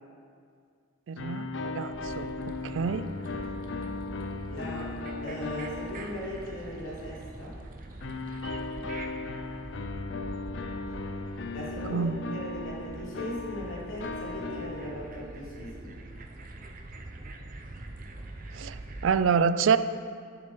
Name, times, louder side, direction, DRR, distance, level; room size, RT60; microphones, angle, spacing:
voice 1, 1.1-2.3 2.6-3.1 11.9-12.3 18.5-18.8 19.0-19.8, right 6 dB, 75° right, 13 dB, 0.4 m, -27 dB
sound 1, 1.2-7.0 8.0-15.4, left 3 dB, 65° left, 0.5 m, -37 dB
sound 2, 1.9-19.2, right 2 dB, 45° right, 0.7 m, -44 dB
voice 2, 4.5-4.9 5.2-7.6 11.5-16.0, left 1 dB, 85° left, -6 dB, 2.8 m, -38 dB
9.5 x 7.5 x 4.7 m, 2.2 s
head